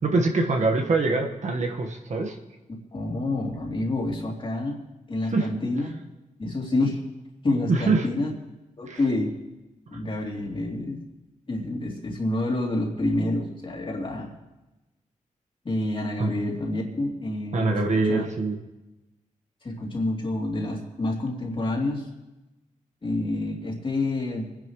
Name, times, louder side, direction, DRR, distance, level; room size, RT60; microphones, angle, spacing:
voice 1, 0.0-2.4 5.3-5.5 7.7-8.1 8.9-9.0 16.2-16.3 17.5-18.6, right 3 dB, 60° right, 2 dB, 1.5 m, -23 dB
voice 2, 2.9-4.8 5.1-6.0 6.4-7.0 7.4-8.3 8.8-9.3 9.9-11.0 11.5-14.3 15.6-17.7 18.1-18.2 19.6-22.1 23.0-24.5, left 2 dB, 40° left, -2 dB, 3.2 m, -28 dB
26.5 x 10.5 x 3.2 m, 1.0 s
cardioid pair, 95°, 14 cm